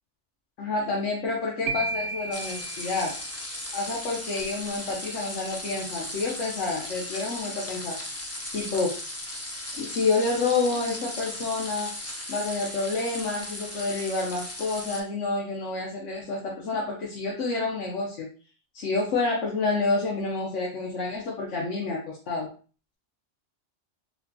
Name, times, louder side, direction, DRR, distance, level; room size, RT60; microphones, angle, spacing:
voice 1, 0.6-3.1 3.7-8.0 8.5-9.0 9.7-11.9 12.3-18.3 18.7-22.5, left 3 dB, 85° left, -3 dB, 1.2 m, -28 dB
sound 1, 1.7-3.8, right 4 dB, 60° right, 0.6 m, -34 dB
sound 2, 2.3-15.0, left 1 dB, 20° left, 0.4 m, -37 dB
4.8 x 2.2 x 2.7 m, 0.37 s
omnidirectional pair, 1.2 m